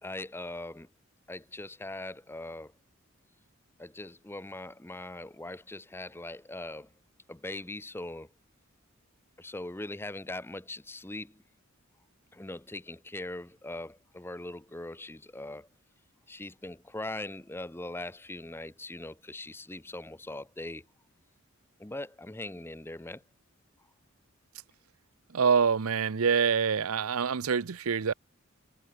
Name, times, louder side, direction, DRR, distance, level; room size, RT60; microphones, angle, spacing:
voice 1, 0.0-0.9 1.3-2.7 3.8-6.9 7.3-8.3 9.4-11.4 12.3-15.7 16.3-20.8 21.8-23.2, left 2 dB, 10° left, 0.7 m, -41 dB
voice 2, 25.3-28.1, right 6 dB, 90° right, 0.7 m, -26 dB
head